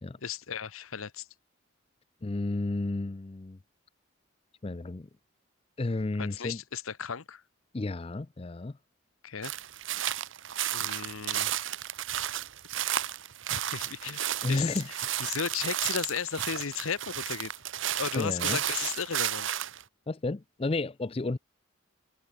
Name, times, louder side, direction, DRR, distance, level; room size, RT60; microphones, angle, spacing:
voice 1, 0.2-1.3 6.2-7.4 9.2-9.5 10.7-11.5 13.5-17.5 18.0-19.5, left 7 dB, 80° left, 0.9 m, -35 dB
voice 2, 2.2-3.6 4.6-5.1 5.8-6.6 7.7-8.8 14.4-14.9 18.1-18.6 20.1-21.4, left 2 dB, 25° left, 0.4 m, -32 dB
sound 1, 9.4-19.8, right 11 dB, 65° right, 1.0 m, -33 dB
head